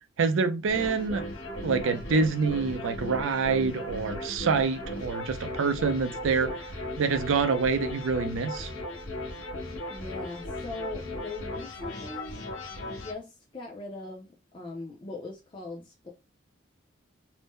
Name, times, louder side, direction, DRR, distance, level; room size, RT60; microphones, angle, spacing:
voice 1, 0.2-1.2 1.6-6.6 7.0-8.7, right 4 dB, 80° right, 0.4 m, -26 dB
sound 1, 0.7-13.1, left 1 dB, 90° left, 0.8 m, -37 dB
voice 2, 9.9-12.4 12.8-16.1, left 2 dB, 25° left, 0.4 m, -40 dB
2.6 x 2.1 x 3.5 m
head